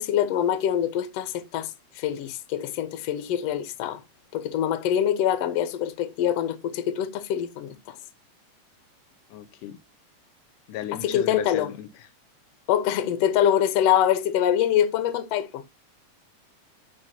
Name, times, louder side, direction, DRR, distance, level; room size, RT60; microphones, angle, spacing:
voice 1, 0.0-1.7 2.0-4.0 4.3-8.0 11.0-11.7 12.7-15.6, left 10 dB, 65° left, 1.7 m, -24 dB
voice 2, 9.3-9.8 10.7-11.9, left 11 dB, 85° left, 2.3 m, -35 dB
13.0 x 4.6 x 2.8 m
omnidirectional pair, 3.7 m